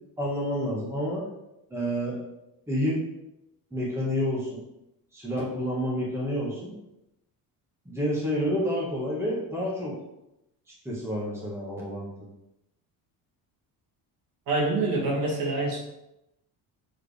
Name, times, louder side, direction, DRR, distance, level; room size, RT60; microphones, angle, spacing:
voice 1, 0.2-1.2 1.7-2.2 2.7-3.0 3.7-4.6 5.1-6.7 7.8-9.9 10.8-12.3, equal, 5° right, -5 dB, 1.7 m, -29 dB
voice 2, 14.5-15.8, right 2 dB, 60° right, -2 dB, 2.1 m, -26 dB
7.2 x 4.8 x 3.4 m, 0.88 s
cardioid pair, 165°, 38 cm